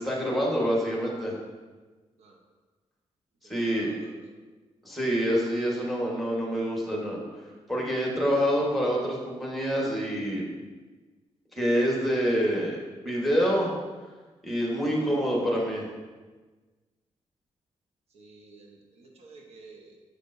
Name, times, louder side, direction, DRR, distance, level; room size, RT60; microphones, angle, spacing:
voice 1, 0.0-1.3 3.4-3.9 4.8-7.2 7.7-10.4 11.5-12.8 13.0-13.7 14.4-15.9, equal, ahead, -3 dB, 1.3 m, -26 dB
voice 2, 3.6-4.2 18.1-20.0, right 3 dB, 70° right, 0 dB, 0.9 m, -52 dB
6.6 x 6.4 x 2.6 m, 1.3 s
wide cardioid pair, 130°, 11 cm